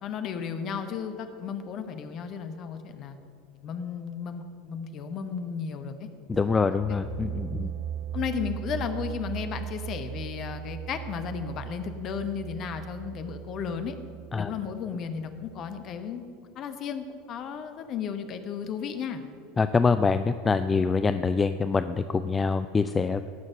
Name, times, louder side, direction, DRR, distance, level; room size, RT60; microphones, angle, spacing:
voice 1, 0.0-3.2 3.6-6.1 6.9-7.0 7.6-7.8 8.1-14.0 14.3-16.2 16.5-19.2, left 7 dB, 40° left, 8 dB, 1.1 m, -34 dB
voice 2, 6.3-7.7 14.3-14.5 19.6-23.3, left 4 dB, 20° left, 11 dB, 0.4 m, -25 dB
sound 1, 6.3-15.9, right 10 dB, 45° right, 0.4 m, -38 dB
17.5 x 6.5 x 6.1 m, 2.6 s
figure-of-eight pair, 75°, 0 cm